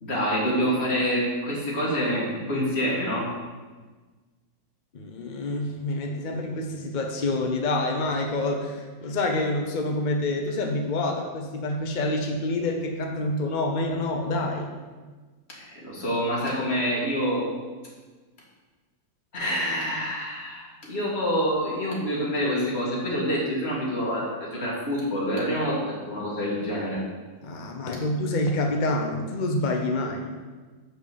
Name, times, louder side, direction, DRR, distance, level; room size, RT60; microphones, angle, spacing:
voice 1, 0.0-3.3 15.5-17.5 19.3-27.0, equal, 35° left, -5 dB, 2.2 m, -27 dB
voice 2, 4.9-14.7 27.4-30.3, left 2 dB, 70° left, 2 dB, 0.4 m, -27 dB
6.0 x 5.3 x 6.8 m, 1.3 s
omnidirectional pair, 2.0 m